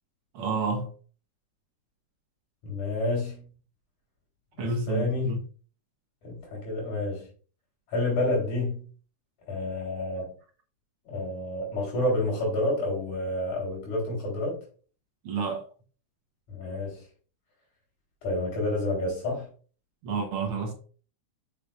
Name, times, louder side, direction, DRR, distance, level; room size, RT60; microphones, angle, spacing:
voice 1, 0.3-0.9 4.6-5.4 15.2-15.6 20.0-20.7, right 4 dB, 60° right, 1.5 m, -30 dB
voice 2, 2.6-3.4 4.6-5.4 6.2-7.2 7.9-8.8 9.5-10.3 11.0-14.6 16.5-17.0 18.2-19.5, left 2 dB, 75° left, 4.9 m, -29 dB
7.3 x 6.5 x 2.4 m
omnidirectional pair, 3.4 m